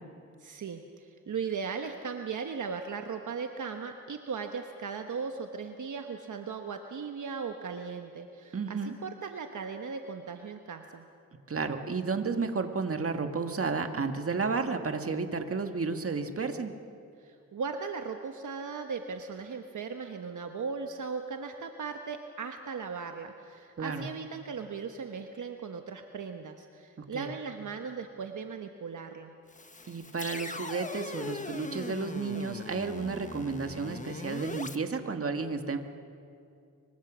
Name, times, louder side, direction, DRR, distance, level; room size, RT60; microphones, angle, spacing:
voice 1, 0.4-11.1 17.2-29.3, right 5 dB, 65° right, 5 dB, 1.2 m, -38 dB
voice 2, 8.5-8.9 11.5-16.8 23.8-24.1 27.0-27.3 29.9-35.8, right 4 dB, 45° right, 6 dB, 1.9 m, -32 dB
sound 1, 29.5-34.8, left 3 dB, 25° left, 1.3 m, -40 dB
25.5 x 24.5 x 6.3 m, 2.5 s
cardioid pair, 80°, 32 cm